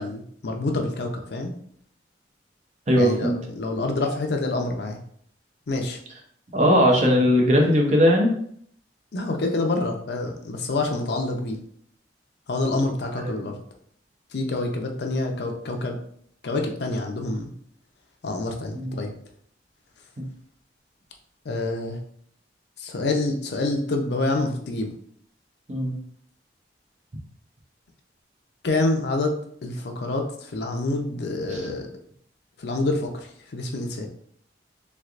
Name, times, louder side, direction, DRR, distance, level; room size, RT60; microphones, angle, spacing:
voice 1, 0.0-1.5 3.0-5.0 5.7-6.0 9.1-11.6 12.5-13.6 14.3-16.0 16.4-17.5 18.2-19.1 21.5-22.0 22.8-24.9 28.6-31.9 32.6-34.1, left 2 dB, 65° left, 3 dB, 0.6 m, -27 dB
voice 2, 2.9-3.4 6.5-8.4 13.2-13.3 18.7-19.0 20.2-20.3 25.7-25.9 31.5-31.6, equal, 40° right, 1 dB, 0.7 m, -19 dB
3.4 x 3.2 x 2.5 m, 0.63 s
head